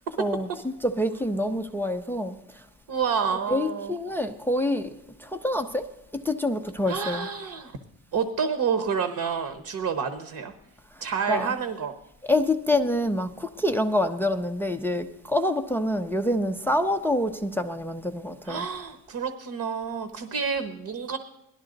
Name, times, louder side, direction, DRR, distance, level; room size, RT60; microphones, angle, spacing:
voice 1, 0.2-2.4 3.5-4.9 5.2-7.3 11.3-11.5 12.2-18.6, left 1 dB, 5° left, 0.4 m, -26 dB
voice 2, 2.9-4.0 6.9-7.8 8.1-10.5 11.0-11.9 18.5-21.2, right 6 dB, 45° right, 1.0 m, -29 dB
18.0 x 12.0 x 3.9 m
cardioid pair, 150°, 42 cm